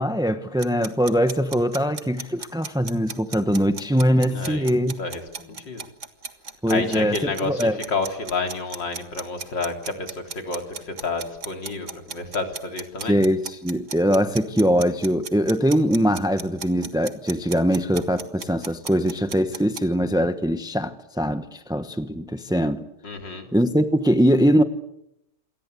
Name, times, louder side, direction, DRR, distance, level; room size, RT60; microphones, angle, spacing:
voice 1, 0.0-5.0 6.6-7.8 13.1-22.8 23.5-24.6, equal, 5° right, 0.5 m, -22 dB
sound 1, 0.6-19.8, right 5 dB, 40° right, 1.9 m, -36 dB
voice 2, 4.3-4.7 5.0-5.8 6.7-13.2 23.0-23.5, left 3 dB, 60° left, 4.2 m, -30 dB
28.0 x 23.5 x 8.3 m
omnidirectional pair, 2.2 m